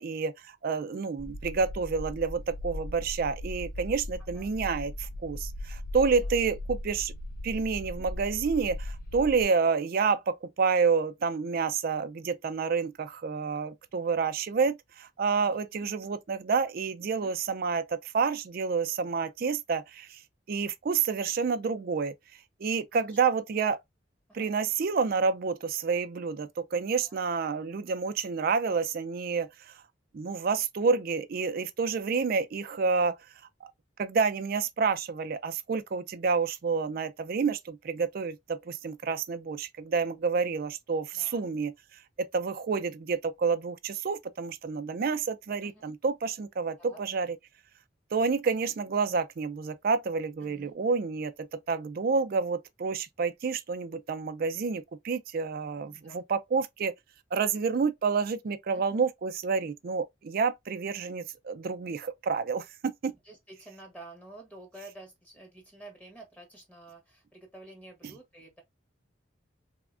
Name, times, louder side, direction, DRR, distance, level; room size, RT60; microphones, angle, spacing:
voice 1, 0.0-7.1 7.4-20.2 20.5-22.1 22.6-23.8 24.3-29.7 30.1-33.1 33.6-33.7 34.0-41.7 42.2-47.4 48.1-56.9 57.3-63.1, right 5 dB, 50° right, 0.4 m, -29 dB
sound 1, 1.2-9.5, left 1 dB, 50° left, 0.4 m, -38 dB
voice 2, 15.4-15.9 17.1-17.3 22.9-23.2 24.3-24.5 27.0-27.2 33.0-33.1 41.1-41.5 45.6-45.9 46.8-47.0 50.4-50.8 55.8-56.2 58.7-58.8 63.1-68.6, right 2 dB, 5° left, 0.7 m, -50 dB
3.3 x 2.1 x 2.4 m
head